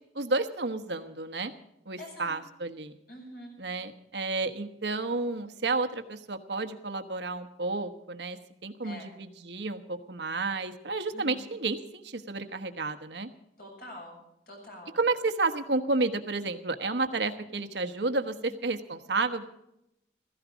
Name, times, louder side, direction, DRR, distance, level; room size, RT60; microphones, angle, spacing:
voice 1, 0.1-1.5 1.9-2.9 3.6-8.4 8.6-13.3 14.9-19.5, right 3 dB, 80° right, 8 dB, 1.2 m, -31 dB
voice 2, 2.0-2.3 3.1-3.5 8.8-9.1 11.1-11.5 13.6-14.2 14.5-15.0 18.3-18.4, left 1 dB, 55° left, 0 dB, 7.4 m, -45 dB
16.0 x 15.5 x 5.1 m, 0.83 s
head